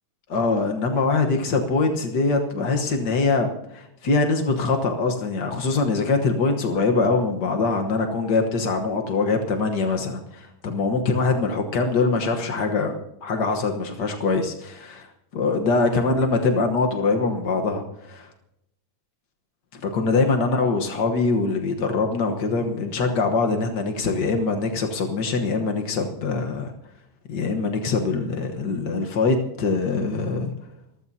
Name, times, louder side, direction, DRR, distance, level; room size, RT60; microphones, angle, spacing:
voice 1, 0.3-12.9 13.2-18.3 19.7-26.7 27.3-30.5, left 3 dB, 70° left, 4 dB, 1.0 m, -23 dB
26.0 x 14.5 x 2.8 m, 0.82 s
omnidirectional pair, 3.7 m